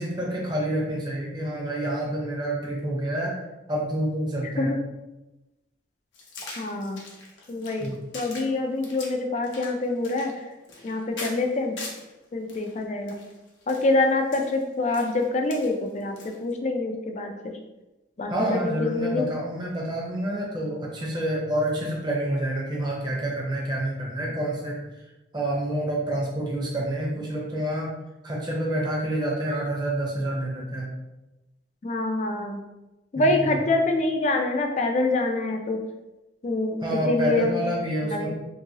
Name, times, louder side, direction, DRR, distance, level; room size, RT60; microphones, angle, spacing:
voice 1, 0.0-3.4 3.7-4.7 7.8-8.0 18.3-24.8 25.3-27.9 28.2-30.9 33.2-33.6 36.8-38.3, right 1 dB, 25° right, -3 dB, 0.7 m, -28 dB
voice 2, 4.4-4.8 6.6-7.0 7.5-10.4 10.8-11.8 12.3-13.2 13.7-17.5 18.2-19.2 31.8-32.6 33.1-35.8 36.4-37.6 38.0-38.3, left 2 dB, 35° left, 4 dB, 0.3 m, -26 dB
sound 1, 6.1-12.1 12.5-16.5, left 2 dB, 75° left, 0.7 m, -42 dB
2.8 x 2.7 x 2.7 m, 1.0 s
head